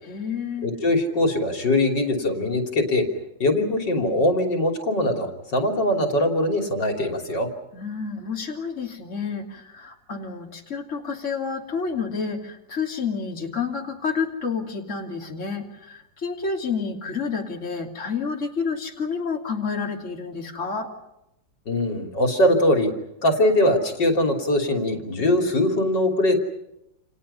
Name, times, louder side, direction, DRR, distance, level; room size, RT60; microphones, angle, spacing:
voice 1, 0.0-0.8 7.7-20.9, left 5 dB, 40° left, 0 dB, 3.3 m, -29 dB
voice 2, 0.6-3.1 3.4-7.5 21.7-22.9 23.2-26.4, left 1 dB, 65° left, 4 dB, 3.6 m, -22 dB
29.0 x 29.0 x 5.6 m, 0.87 s
omnidirectional pair, 2.0 m